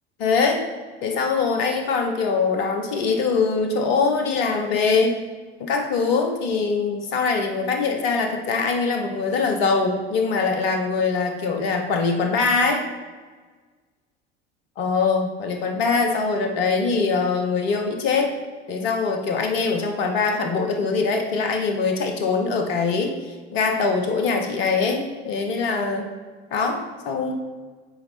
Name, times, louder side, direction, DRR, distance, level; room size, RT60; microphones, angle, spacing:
voice 1, 0.2-0.6 1.0-5.2 5.6-12.8 14.8-18.3 18.7-23.2 23.5-26.1 26.5-27.3, left 4 dB, 60° left, 4 dB, 1.2 m, -23 dB
6.9 x 4.5 x 4.3 m, 1.4 s
figure-of-eight pair, 70°, 33 cm